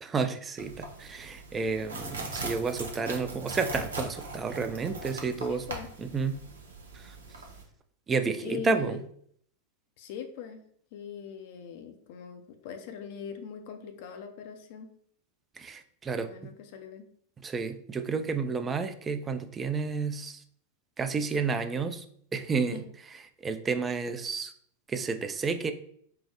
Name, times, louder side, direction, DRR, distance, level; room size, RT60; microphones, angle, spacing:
voice 1, 0.0-5.6 6.0-6.4 6.9-7.2 8.1-9.0 15.6-16.5 17.4-20.4 21.0-22.0 22.3-22.8 23.4-24.5 24.9-25.7, right 4 dB, 20° right, 9 dB, 0.4 m, -31 dB
sound 1, 0.6-7.6, right 2 dB, 70° right, 0.7 m, -40 dB
voice 2, 5.4-5.9 8.4-9.0 10.0-10.6 10.9-14.9 16.1-17.0 22.7-22.9, left 7 dB, 50° left, 6 dB, 0.5 m, -41 dB
4.5 x 2.0 x 3.2 m, 0.62 s
figure-of-eight pair, 90°, 0 cm